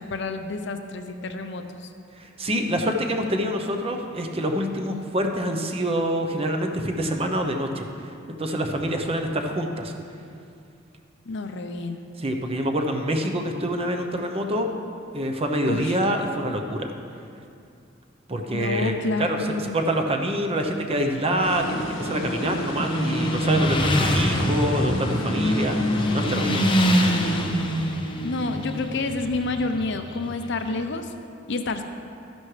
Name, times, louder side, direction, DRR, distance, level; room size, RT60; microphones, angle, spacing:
voice 1, 0.0-1.9 11.3-12.0 15.7-16.0 18.5-19.8 28.2-31.1 31.5-31.8, left 3 dB, 60° left, 7 dB, 0.6 m, -29 dB
voice 2, 2.2-7.9 8.4-9.9 12.2-14.7 15.1-16.9 18.3-26.7, equal, 30° right, 3 dB, 0.8 m, -26 dB
Motorcycle, 20.9-30.7, equal, 25° left, 0.8 m, -25 dB
sound 1, 21.4-28.0, equal, 90° left, 1.1 m, -32 dB
13.0 x 10.5 x 3.3 m, 2.5 s
head